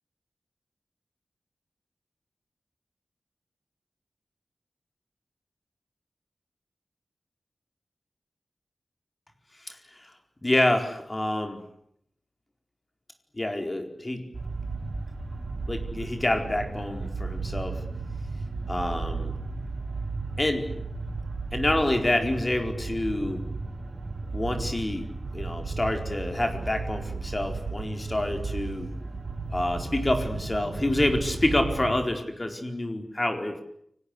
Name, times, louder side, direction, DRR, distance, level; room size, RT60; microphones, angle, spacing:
voice 1, 9.7-10.1 10.4-11.6 13.4-14.3 15.7-17.8 18.7-19.3 20.4-20.7 21.5-23.4 24.3-25.1 25.3-28.9 29.5-33.6, left 1 dB, 25° left, 5 dB, 4.3 m, -27 dB
sound 1, 14.3-31.9, right 3 dB, 60° right, 5.3 m, -34 dB
29.0 x 19.5 x 9.9 m, 0.74 s
wide cardioid pair, 80°, 0 cm